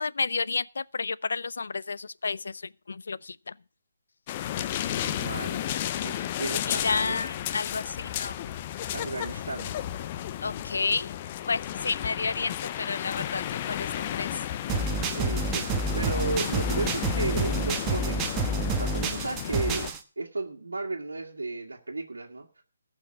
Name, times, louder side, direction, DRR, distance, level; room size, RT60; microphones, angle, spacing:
voice 1, 0.0-2.6 2.9-3.5 6.7-8.4 10.4-11.1 11.5-13.4 13.7-14.3, left 4 dB, 70° left, 0.5 m, -31 dB
sound 1, 4.3-19.9, left 11 dB, 30° left, 0.6 m, -33 dB
voice 2, 4.9-5.7 6.0-7.2 8.9-9.8 15.1-15.6 15.9-18.4 18.7-19.9 20.2-22.6, right 2 dB, 90° right, 1.8 m, -34 dB
sound 2, 14.7-20.0, right 3 dB, 15° right, 1.2 m, -29 dB
14.5 x 6.1 x 7.6 m
hypercardioid pair, 155°, 0 cm